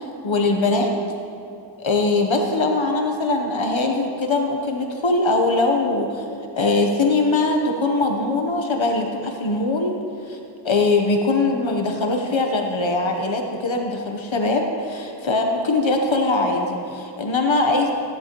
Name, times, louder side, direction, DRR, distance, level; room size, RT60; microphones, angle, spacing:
voice 1, 0.2-0.9 1.8-6.2 6.6-9.9 10.3-10.4 10.6-17.9, left 3 dB, 75° left, 3 dB, 1.0 m, -21 dB
15.5 x 10.5 x 3.0 m, 2.7 s
wide cardioid pair, 60°, 46 cm